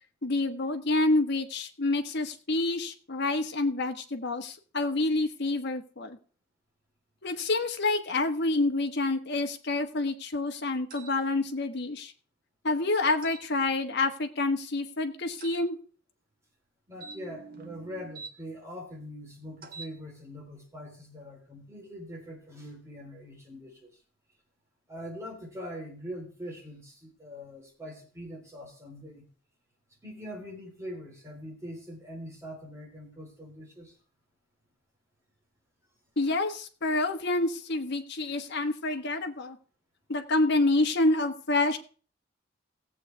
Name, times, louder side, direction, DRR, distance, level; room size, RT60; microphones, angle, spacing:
voice 1, 0.2-6.2 7.2-12.1 12.6-15.8 36.2-39.6 40.1-41.8, left 2 dB, 60° left, 5 dB, 1.3 m, -28 dB
sound 1, 10.9-11.2 13.2-13.5 15.4-15.6 17.0-18.3 19.6-19.9, right 5 dB, 45° right, 1.3 m, -45 dB
voice 2, 16.9-23.9 24.9-29.3 30.0-33.9, equal, 15° right, 0 dB, 3.7 m, -43 dB
17.5 x 8.0 x 3.4 m, 0.39 s
head